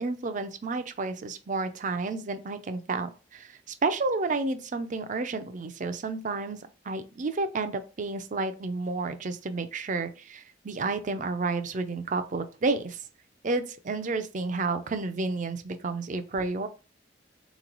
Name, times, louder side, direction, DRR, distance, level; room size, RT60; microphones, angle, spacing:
voice 1, 0.0-13.0 13.4-16.7, right 3 dB, 40° right, 0.5 m, -31 dB
3.7 x 3.0 x 3.9 m
head